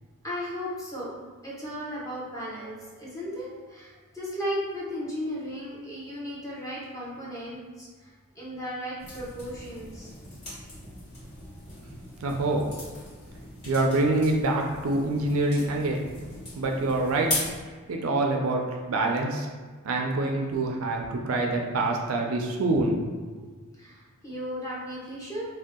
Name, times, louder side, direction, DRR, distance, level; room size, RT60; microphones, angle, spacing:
voice 1, 0.2-1.1 1.4-10.1 23.8-25.5, equal, 15° left, -7 dB, 0.8 m, -35 dB
sound 1, 9.0-17.6, left 1 dB, 50° left, 1.4 m, -39 dB
voice 2, 12.2-12.7 13.6-16.0 16.5-17.3 17.9-19.5 19.8-23.2, right 2 dB, 70° right, 2 dB, 0.4 m, -26 dB
2.6 x 2.2 x 3.6 m, 1.4 s
head